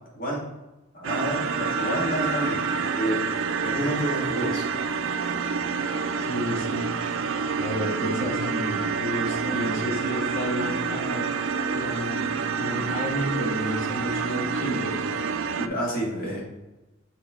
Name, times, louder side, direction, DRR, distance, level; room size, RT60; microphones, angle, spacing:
voice 1, 0.9-3.2 3.6-4.6 15.6-16.4, right 1 dB, 45° left, -4 dB, 1.9 m, -29 dB
sound 1, 1.0-15.7, right 5 dB, 65° right, 0.4 m, -28 dB
voice 2, 6.2-6.9 7.6-11.2 11.7-12.3 12.6-15.0, equal, 65° left, -1 dB, 1.6 m, -31 dB
7.0 x 4.4 x 3.6 m, 1.0 s
head